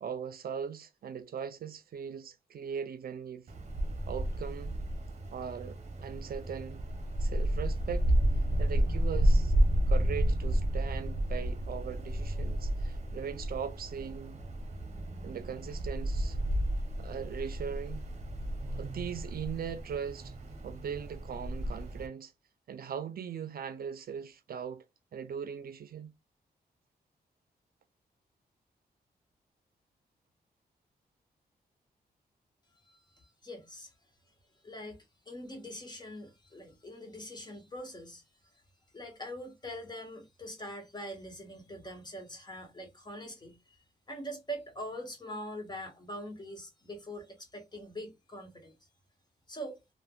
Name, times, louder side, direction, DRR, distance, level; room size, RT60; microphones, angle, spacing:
voice 1, 0.0-3.4 4.1-4.7 5.3-6.8 7.2-8.1 8.6-9.5 9.9-14.4 15.2-16.4 17.0-18.0 18.7-20.3 20.6-22.3 22.7-24.8 25.1-26.1, right 7 dB, 65° right, 0.5 m, -39 dB
Wind, 3.5-22.1, right 1 dB, 45° right, 0.8 m, -31 dB
voice 2, 32.9-33.9 34.6-38.2 38.9-48.8 49.5-49.8, equal, 25° left, 1.2 m, -43 dB
3.3 x 2.2 x 2.4 m
cardioid pair, 75°, 17 cm